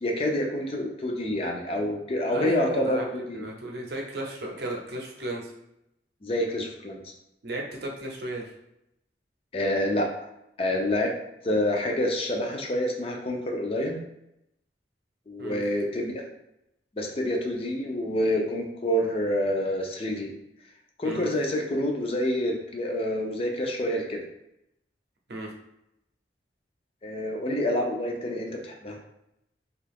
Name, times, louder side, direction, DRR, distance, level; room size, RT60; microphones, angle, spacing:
voice 1, 0.0-3.4 6.2-7.1 9.5-10.1 10.6-11.1 11.4-14.0 15.3-16.1 16.9-20.3 21.0-24.2 27.0-29.0, left 1 dB, 30° left, 1 dB, 0.4 m, -27 dB
voice 2, 2.3-3.1 3.3-5.5 7.4-8.5 15.4-15.6 21.0-21.3 25.3-25.5, right 1 dB, 65° right, 0 dB, 0.6 m, -34 dB
2.7 x 2.4 x 3.4 m, 0.83 s
head